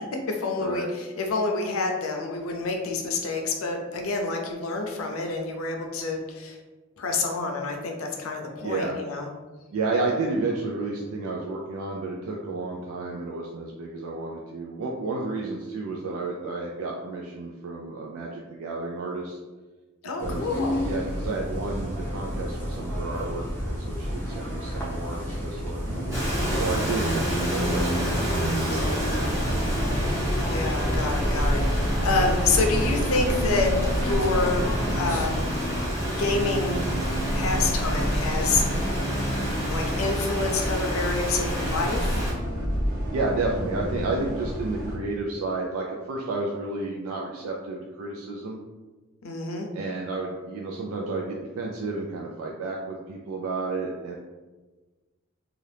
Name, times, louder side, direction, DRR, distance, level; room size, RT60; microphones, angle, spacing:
voice 1, 0.3-6.6 7.0-9.3 20.0-20.8 30.4-35.5 36.2-36.8 37.3-38.6 39.7-42.2 49.2-49.7, left 3 dB, 90° left, 3 dB, 0.5 m, -28 dB
voice 2, 8.6-9.0 9.7-19.4 20.2-20.5 20.8-25.9 26.5-29.6 43.1-48.6 49.7-54.2, right 3 dB, 85° right, -1 dB, 0.4 m, -31 dB
sound 1, 20.2-35.4, equal, 10° left, 0.6 m, -32 dB
Bus, 25.8-45.0, equal, 40° right, 1.0 m, -29 dB
Rain, 26.1-42.3, equal, 15° right, 1.0 m, -29 dB
2.7 x 2.4 x 3.3 m, 1.3 s
head